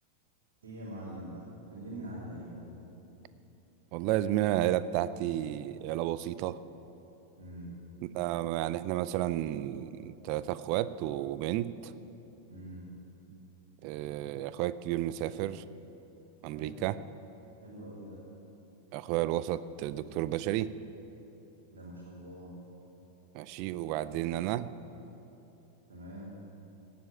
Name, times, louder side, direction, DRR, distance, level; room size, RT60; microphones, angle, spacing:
voice 1, 0.6-2.6 7.4-7.8 12.5-13.0 16.5-16.8 17.6-18.2 21.7-22.6 25.9-26.3, right 1 dB, 60° right, -6 dB, 3.1 m, -44 dB
voice 2, 3.9-6.6 8.0-11.9 13.8-15.6 16.4-17.0 18.9-20.7 23.3-24.7, right 13 dB, 45° right, 16 dB, 0.5 m, -32 dB
17.0 x 7.7 x 9.2 m, 3.0 s
figure-of-eight pair, 90°, 0 cm